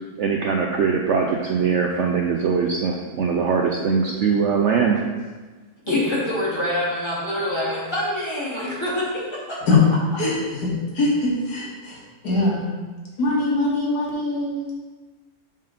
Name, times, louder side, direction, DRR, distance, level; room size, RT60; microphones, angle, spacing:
voice 1, 0.2-5.0, right 5 dB, 65° right, 1 dB, 0.7 m, -21 dB
voice 2, 5.9-9.8, left 1 dB, 15° left, -7 dB, 2.1 m, -25 dB
voice 3, 11.0-12.0 12.2-12.7 13.2-14.6, left 2 dB, 80° left, -5 dB, 2.2 m, -22 dB
7.4 x 3.8 x 5.1 m, 1.3 s
omnidirectional pair, 1.7 m